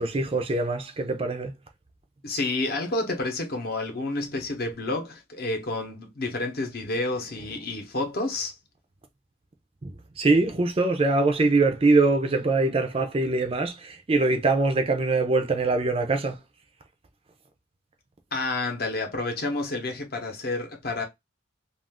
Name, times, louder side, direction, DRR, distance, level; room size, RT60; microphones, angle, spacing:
voice 1, 0.0-1.5 9.8-16.4, right 3 dB, 30° right, 0.4 m, -23 dB
voice 2, 2.2-8.5 18.3-21.0, left 2 dB, 50° left, 0.8 m, -29 dB
2.4 x 2.4 x 3.4 m
head